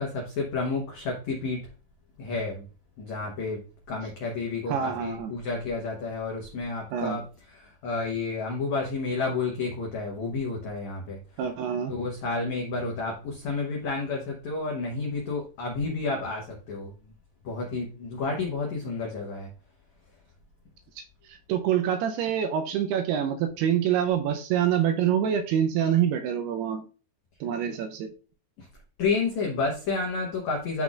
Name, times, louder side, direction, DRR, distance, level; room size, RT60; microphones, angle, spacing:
voice 1, 0.0-1.6 2.2-2.7 3.0-3.6 3.9-7.2 7.5-11.2 11.9-16.9 17.4-19.5 28.6-28.7 29.0-30.8, left 3 dB, 90° left, -1 dB, 1.6 m, -30 dB
voice 2, 4.7-5.3 6.9-7.2 11.4-11.9 21.0-21.1 21.3-26.8 27.4-28.1, right 9 dB, 85° right, 7 dB, 2.5 m, -26 dB
12.0 x 4.0 x 2.4 m, 0.36 s
omnidirectional pair, 5.0 m